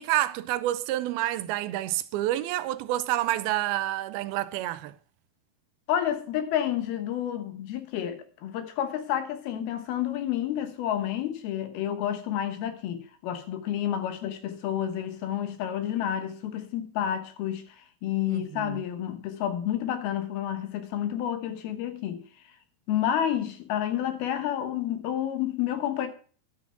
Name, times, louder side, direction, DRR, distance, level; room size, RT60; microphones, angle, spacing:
voice 1, 0.0-5.0 18.3-18.8, right 14 dB, 90° right, 2.5 m, -28 dB
voice 2, 5.9-22.2 22.9-26.1, left 10 dB, 85° left, 3.2 m, -30 dB
11.0 x 6.4 x 5.8 m
omnidirectional pair, 4.3 m